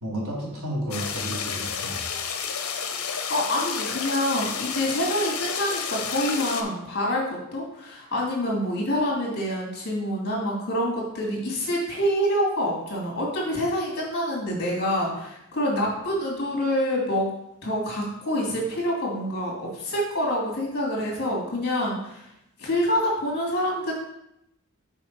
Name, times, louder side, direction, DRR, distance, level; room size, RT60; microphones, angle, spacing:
voice 1, 0.0-2.1, right 1 dB, 85° right, -4 dB, 2.5 m, -32 dB
sound 1, 0.9-6.6, left 6 dB, 75° left, 0.8 m, -31 dB
voice 2, 3.0-17.3 17.6-22.3 22.6-23.9, equal, 45° left, -3 dB, 2.5 m, -26 dB
6.3 x 5.1 x 4.6 m, 0.82 s
head